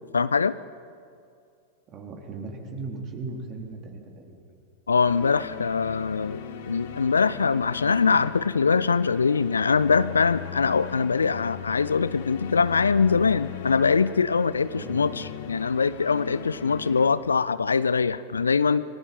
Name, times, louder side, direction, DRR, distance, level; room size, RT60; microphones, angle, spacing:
voice 1, 0.1-0.5 4.9-18.8, left 5 dB, 75° left, 17 dB, 0.5 m, -23 dB
voice 2, 1.9-4.3 11.2-11.3 14.7-15.0, right 3 dB, 30° right, 2 dB, 4.0 m, -37 dB
sound 1, 5.0-17.1, left 8 dB, 55° left, 1.8 m, -38 dB
29.5 x 20.5 x 5.6 m, 2.4 s
figure-of-eight pair, 90°, 0 cm